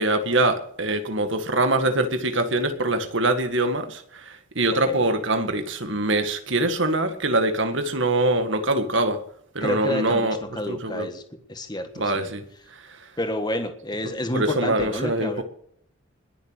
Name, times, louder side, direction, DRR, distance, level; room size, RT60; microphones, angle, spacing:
voice 1, 0.0-9.2 9.6-10.4 10.7-11.1 12.0-12.4 14.3-15.4, right 2 dB, 60° right, 7 dB, 2.0 m, -23 dB
voice 2, 9.6-11.2 11.5-12.3 13.2-15.4, left 1 dB, 20° left, 7 dB, 1.5 m, -29 dB
21.0 x 7.4 x 6.7 m, 0.67 s
head